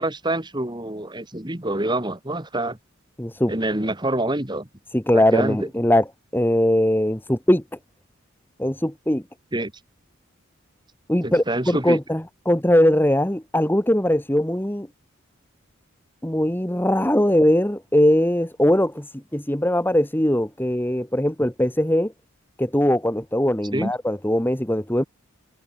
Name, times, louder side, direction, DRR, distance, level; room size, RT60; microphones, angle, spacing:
voice 1, 0.0-2.8 3.5-4.7 5.1-5.7 9.5-9.7 11.2-12.0 23.7-23.9, right 1 dB, 20° right, 2.1 m, -26 dB
voice 2, 3.2-3.5 4.9-6.0 6.3-7.6 8.6-9.2 11.1-14.9 16.2-19.1 19.3-22.1 22.6-25.0, left 1 dB, 10° left, 1.4 m, -20 dB
head